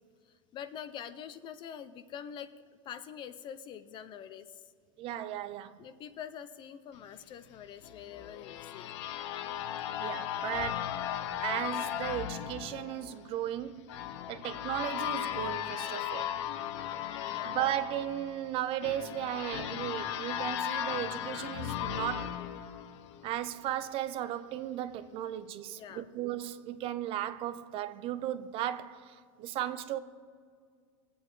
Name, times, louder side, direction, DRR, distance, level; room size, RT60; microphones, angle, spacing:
voice 1, 0.3-2.5 2.8-4.7 5.8-8.9 17.3-17.6 25.7-26.1, left 8 dB, 30° left, 0.6 m, -45 dB
voice 2, 5.0-5.8 10.0-10.9 11.4-13.9 14.3-16.4 17.5-22.4 23.2-30.0, right 12 dB, 35° right, 0.5 m, -36 dB
sound 1, 7.8-23.5, left 10 dB, 70° left, 0.7 m, -37 dB
21.0 x 8.4 x 3.9 m
supercardioid pair, 145°, 16 cm